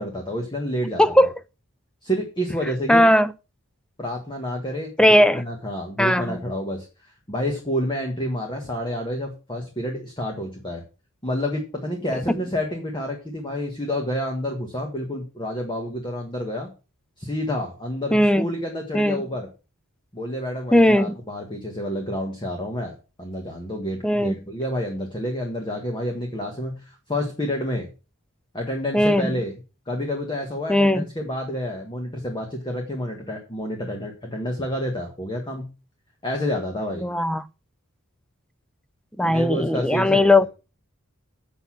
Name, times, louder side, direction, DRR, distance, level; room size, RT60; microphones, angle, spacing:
voice 1, 0.0-1.1 2.0-3.0 4.0-10.8 11.2-16.7 17.2-19.5 20.1-27.9 28.5-29.6 29.9-35.7 36.2-37.0 39.2-40.3, equal, 20° left, 1.6 m, -29 dB
voice 2, 1.0-1.3 2.9-3.3 5.0-5.4 6.0-6.4 18.1-18.5 18.9-19.2 20.7-21.2 24.0-24.4 28.9-29.3 30.7-31.0 37.0-37.4 39.2-40.5, left 1 dB, 5° left, 0.4 m, -18 dB
8.1 x 6.7 x 5.9 m
head